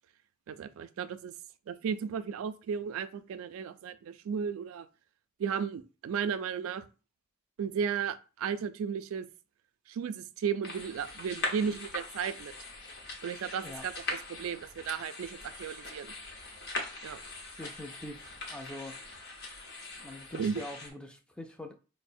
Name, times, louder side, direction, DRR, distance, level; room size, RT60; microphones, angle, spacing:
voice 1, 0.5-1.3 1.7-4.9 5.4-6.9 7.6-9.3 9.9-12.5 13.2-13.9 14.3-16.1 17.0-17.2 20.4-20.6, right 7 dB, 80° right, 0.3 m, -34 dB
sound 1, 10.6-20.9, left 2 dB, 50° left, 0.8 m, -41 dB
voice 2, 17.6-19.2 20.0-21.7, left 1 dB, 5° left, 0.3 m, -44 dB
4.7 x 2.0 x 2.6 m
head